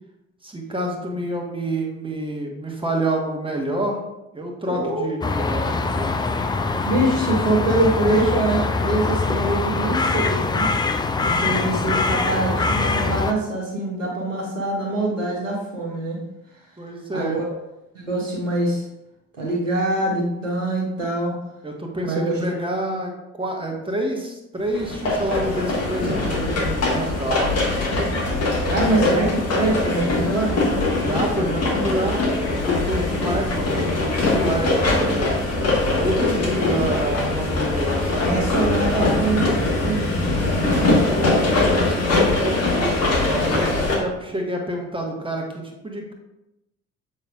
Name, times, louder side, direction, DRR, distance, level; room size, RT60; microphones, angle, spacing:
voice 1, 0.4-4.0 4.3-6.2 16.8-17.4 21.6-23.1 23.4-27.5 30.9-35.3 35.9-38.6 40.4-43.7 44.0-45.5 45.8-46.1, right 1 dB, 15° right, 1 dB, 1.4 m, -28 dB
voice 2, 4.7-5.1 6.9-10.7 11.2-16.2 17.1-17.4 17.9-18.9 19.4-21.3 22.0-22.4 28.7-30.6 38.2-40.5, right 2 dB, 85° right, -2 dB, 1.0 m, -24 dB
sound 1, 5.2-13.3, left 3 dB, 10° left, 0.4 m, -23 dB
sound 2, 24.7-44.0, left 2 dB, 40° left, 1.6 m, -22 dB
7.0 x 5.4 x 2.5 m, 0.92 s
figure-of-eight pair, 45°, 37 cm